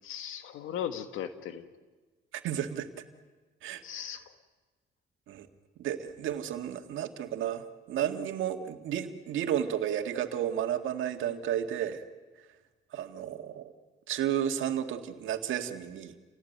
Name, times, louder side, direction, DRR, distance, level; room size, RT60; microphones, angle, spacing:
voice 1, 0.0-1.7 3.8-4.2, left 9 dB, 90° left, 9 dB, 1.6 m, -37 dB
voice 2, 2.3-2.9 3.6-3.8 5.3-5.5 5.8-12.0 12.9-13.7 14.1-16.1, right 10 dB, 80° right, 6 dB, 1.9 m, -32 dB
29.5 x 18.0 x 9.3 m, 1.3 s
cardioid pair, 90°, 20 cm